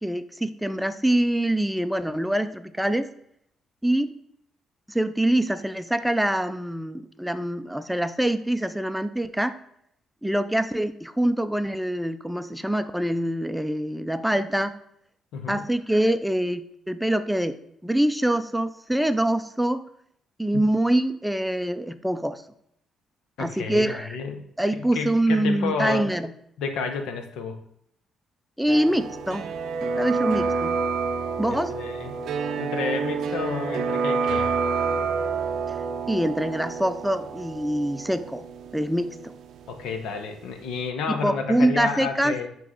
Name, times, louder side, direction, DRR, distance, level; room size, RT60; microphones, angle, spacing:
voice 1, 0.0-3.1 3.8-4.1 4.9-9.6 10.2-14.7 15.5-17.6 17.8-19.8 20.4-22.4 23.4-24.2 24.6-26.3 28.6-29.5 29.8-30.8 31.4-31.8 36.1-38.4 38.7-39.1 41.1-42.4, right 1 dB, 5° right, 11 dB, 0.4 m, -24 dB
voice 2, 15.3-15.7 20.5-20.6 23.4-24.5 24.8-26.1 26.6-27.6 31.5-32.2 32.6-34.5 39.7-42.5, left 5 dB, 85° left, 6 dB, 0.7 m, -31 dB
sound 1, 28.7-40.4 40.6-40.7, right 5 dB, 75° right, 0.4 m, -28 dB
8.9 x 3.0 x 3.7 m, 0.71 s
cardioid pair, 90°, 0 cm